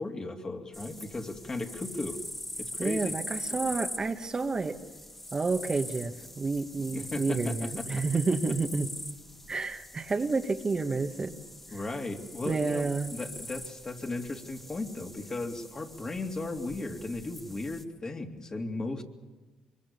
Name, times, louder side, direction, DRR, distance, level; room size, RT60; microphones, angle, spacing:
voice 1, 0.0-2.2 2.6-3.2 3.5-3.7 6.9-7.8 11.7-19.0, left 2 dB, 35° left, 2 dB, 3.1 m, -36 dB
sound 1, 0.7-17.8, left 1 dB, 10° left, 1.7 m, -43 dB
voice 2, 2.8-4.8 5.3-8.9 9.5-11.4 12.5-13.1, right 3 dB, 35° right, 5 dB, 1.6 m, -30 dB
24.5 x 22.5 x 7.0 m, 1.2 s
supercardioid pair, 65°, 2 cm